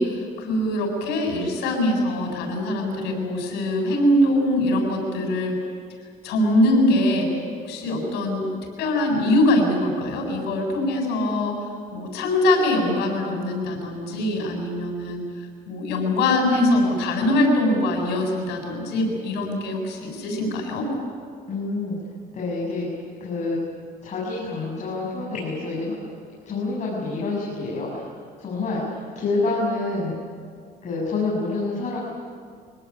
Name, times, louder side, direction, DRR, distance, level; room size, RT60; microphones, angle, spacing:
voice 1, 0.0-5.5 6.2-7.3 7.6-8.5 8.8-11.6 11.9-15.2 15.7-20.9, left 1 dB, 90° left, 2 dB, 7.4 m, -22 dB
voice 2, 21.5-22.0 22.3-22.9 23.2-23.6 24.0-25.9 26.5-28.1 28.4-30.2 30.8-32.0, left 3 dB, 45° left, -4 dB, 7.5 m, -27 dB
26.0 x 18.5 x 9.9 m, 2.1 s
cardioid pair, 110°, 17 cm